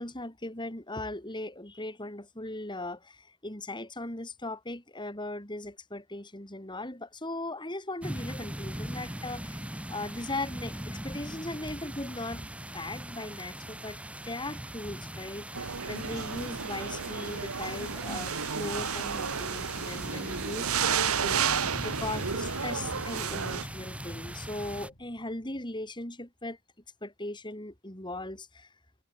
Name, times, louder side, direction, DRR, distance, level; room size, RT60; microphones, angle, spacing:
voice 1, 0.0-9.6 9.9-12.5 12.7-26.6 27.0-28.7, left 2 dB, 20° left, 5.0 m, -38 dB
sound 1, 8.0-24.9, right 1 dB, 5° right, 6.7 m, -41 dB
sound 2, 15.5-23.6, right 6 dB, 85° right, 1.4 m, -32 dB
sound 3, 21.0-25.9, equal, 60° left, 7.2 m, -52 dB
head